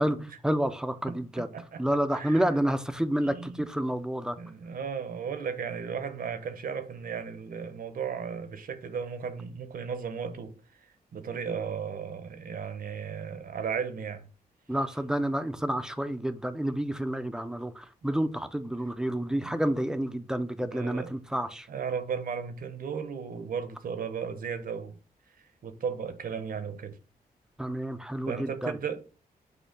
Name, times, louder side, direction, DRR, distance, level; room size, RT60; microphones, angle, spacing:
voice 1, 0.4-1.5 1.8-4.4 14.7-21.7 27.6-28.7, right 1 dB, 5° right, 0.5 m, -29 dB
voice 2, 1.1-1.8 2.1-2.5 3.2-3.8 4.4-10.5 11.1-14.3 19.4-19.6 20.6-21.1 21.7-25.0 25.6-27.0 28.3-29.0, right 6 dB, 65° right, 0.8 m, -35 dB
6.6 x 2.8 x 5.2 m
wide cardioid pair, 155°, 16 cm